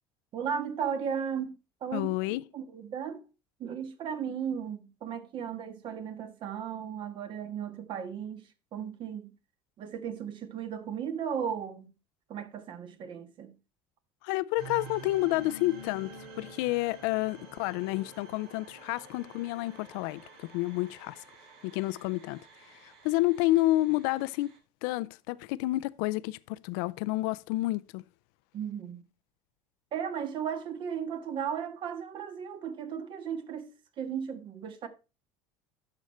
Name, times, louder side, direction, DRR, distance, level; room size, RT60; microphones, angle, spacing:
voice 1, 0.3-1.5 1.8-2.2 2.5-3.2 3.6-8.4 8.7-9.3 9.8-11.9 12.3-13.5 28.5-29.0 29.9-34.9, right 8 dB, 45° right, 1.4 m, -35 dB
voice 2, 1.9-2.4 14.2-21.2 21.6-22.4 22.7-24.5 24.8-28.0, left 18 dB, 75° left, 0.5 m, -30 dB
sound 1, 14.6-24.6, right 2 dB, 65° right, 3.7 m, -49 dB
10.5 x 6.4 x 4.2 m
supercardioid pair, 115°, 11 cm